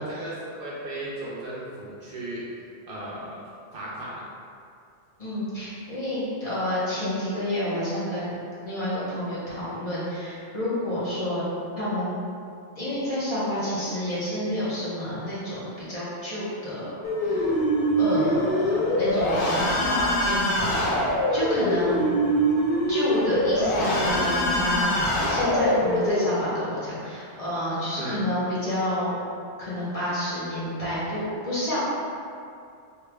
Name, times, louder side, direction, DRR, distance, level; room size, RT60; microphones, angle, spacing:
voice 1, 0.0-2.4 2.9-3.4 3.7-4.2 18.1-18.3 28.0-28.2, right 1 dB, 60° right, -6 dB, 0.7 m, -36 dB
voice 2, 5.2-8.3 8.6-11.5 11.8-12.1 12.8-17.0 17.2-17.5 18.0-22.1 22.9-29.2 29.6-31.8, left 1 dB, 35° left, -11 dB, 0.9 m, -29 dB
sound 1, 17.0-26.2, equal, 60° left, 0.7 m, -23 dB
3.2 x 2.3 x 3.3 m, 2.4 s
omnidirectional pair, 1.2 m